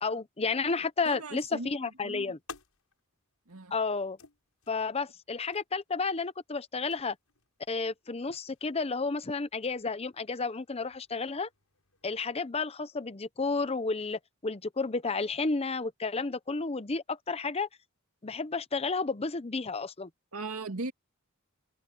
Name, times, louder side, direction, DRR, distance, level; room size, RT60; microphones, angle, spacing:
voice 1, 0.0-2.4 3.7-4.2 4.7-7.2 7.7-11.5 12.0-17.7 18.2-20.1, left 4 dB, 30° left, 0.7 m, -32 dB
voice 2, 1.0-2.3 3.5-3.7 20.3-20.9, right 2 dB, 80° right, 2.3 m, -38 dB
sound 1, 1.7-12.2, left 5 dB, 80° left, 7.1 m, -56 dB
head